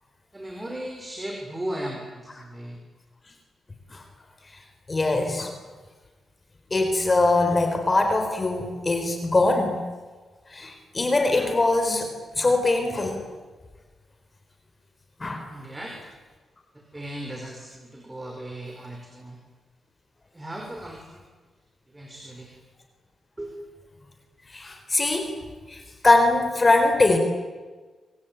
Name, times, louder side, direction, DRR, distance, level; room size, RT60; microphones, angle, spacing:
voice 1, 0.3-2.8 15.5-16.0 16.7-19.4 20.3-21.2 21.9-22.5 23.4-23.6, right 1 dB, 15° right, 2 dB, 5.0 m, -36 dB
voice 2, 4.9-5.5 6.7-9.8 10.5-13.2 15.2-15.5 24.5-25.4 25.7-27.2, left 2 dB, 25° left, 5 dB, 4.3 m, -22 dB
26.0 x 24.5 x 9.3 m, 1.4 s
wide cardioid pair, 120°, 0 cm